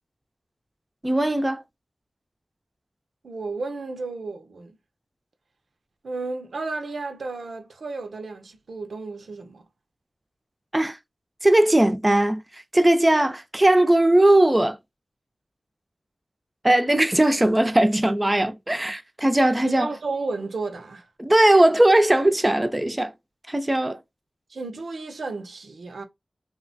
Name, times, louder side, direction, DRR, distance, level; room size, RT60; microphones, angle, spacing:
voice 1, 1.0-1.6 10.7-11.0 11.4-14.8 16.6-19.9 21.2-23.1 23.5-24.0, right 1 dB, 20° right, 0.5 m, -19 dB
voice 2, 3.2-4.7 6.0-9.6 19.6-21.1 24.5-26.0, right 3 dB, 90° right, 0.5 m, -33 dB
2.9 x 2.1 x 2.6 m
cardioid pair, 50°, 0 cm